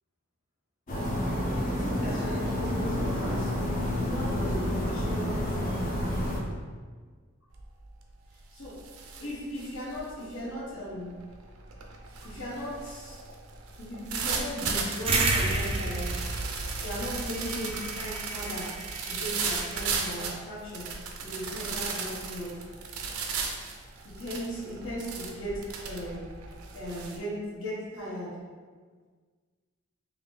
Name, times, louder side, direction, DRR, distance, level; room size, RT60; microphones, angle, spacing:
sound 1, 0.9-6.4, left 1 dB, 40° left, 0.6 m, -29 dB
voice 1, 1.7-3.5 4.0-5.7 8.5-8.8 9.2-11.2 12.2-13.2 13.8-16.1 16.8-18.7 19.0-20.8 21.2-22.6 24.0-26.3 26.7-28.4, equal, 70° left, -8 dB, 1.3 m, -37 dB
sound 2, 7.5-7.9 8.2-27.2, right 5 dB, 80° right, 0.5 m, -36 dB
sound 3, 15.1-20.0, right 2 dB, 25° right, 0.4 m, -31 dB
3.9 x 2.9 x 3.2 m, 1.5 s
head